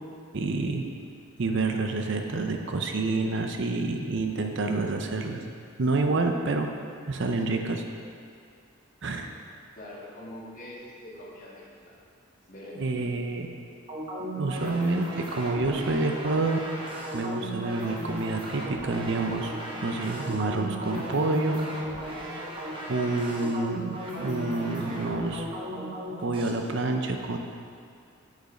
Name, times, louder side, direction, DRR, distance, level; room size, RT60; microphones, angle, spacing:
voice 1, 0.3-0.8 1.4-5.4 5.8-6.7 7.1-7.8 9.0-9.3 12.8-13.5 14.3-16.6 17.1-19.5 19.8-21.7 22.3-22.5 22.9-25.5 26.2-27.4, right 3 dB, 55° right, 4 dB, 0.6 m, -28 dB
voice 2, 9.7-12.0 12.5-13.1, left 1 dB, 40° left, -7 dB, 2.1 m, -44 dB
sound 1, 13.9-26.5, equal, 25° right, 1.1 m, -36 dB
8.2 x 6.5 x 4.9 m, 2.3 s
head